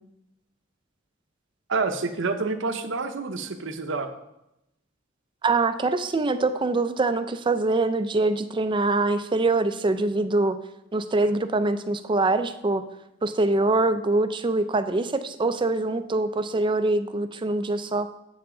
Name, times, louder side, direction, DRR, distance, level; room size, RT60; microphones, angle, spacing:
voice 1, 1.7-4.1, right 4 dB, 65° right, 7 dB, 0.8 m, -28 dB
voice 2, 5.4-10.6 10.9-12.8 13.2-18.1, right 2 dB, 25° right, 10 dB, 0.4 m, -24 dB
7.9 x 6.9 x 3.8 m, 0.85 s
head